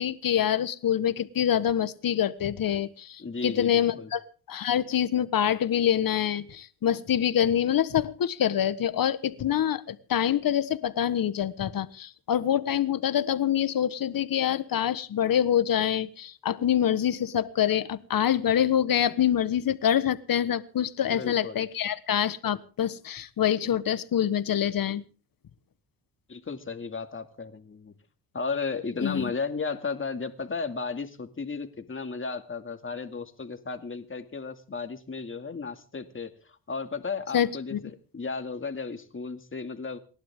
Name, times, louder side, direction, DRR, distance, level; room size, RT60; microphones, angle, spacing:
voice 1, 0.0-4.2 4.5-25.0 29.0-29.3 37.3-37.8, left 10 dB, 50° left, 14 dB, 1.4 m, -26 dB
voice 2, 3.2-4.1 21.1-21.7 26.3-27.9 28.3-40.0, left 4 dB, 30° left, 7 dB, 2.4 m, -34 dB
28.5 x 11.5 x 3.7 m, 0.39 s
cardioid pair, 75°, 43 cm